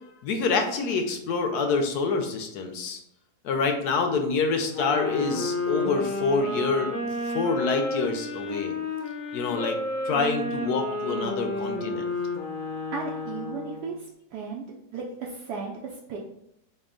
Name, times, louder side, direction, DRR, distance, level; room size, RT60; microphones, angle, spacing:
voice 1, 0.2-3.0 3.4-8.8 9.3-9.8 10.0-12.1, left 4 dB, 80° left, 4 dB, 1.1 m, -27 dB
sound 1, 4.7-13.9, left 2 dB, 15° left, 0.5 m, -31 dB
voice 2, 12.9-14.6 14.9-16.2, right 5 dB, 80° right, -2 dB, 1.2 m, -35 dB
5.2 x 2.4 x 3.7 m, 0.79 s
omnidirectional pair, 1.7 m